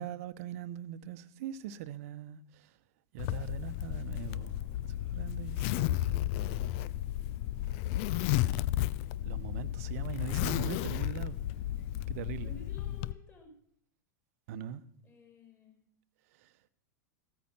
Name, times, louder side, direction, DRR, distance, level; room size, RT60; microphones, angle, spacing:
voice 1, 0.0-2.7 3.1-4.7 5.0-6.7 9.2-11.4 12.1-12.5 14.5-14.8 16.4-16.5, right 10 dB, 50° right, 1.0 m, -42 dB
Zipper (clothing), 3.2-13.1, left 14 dB, 45° left, 0.6 m, -33 dB
voice 2, 12.4-13.6 15.0-15.8, left 2 dB, 25° left, 6.7 m, -54 dB
15.0 x 13.5 x 5.9 m
figure-of-eight pair, 90°, 10 cm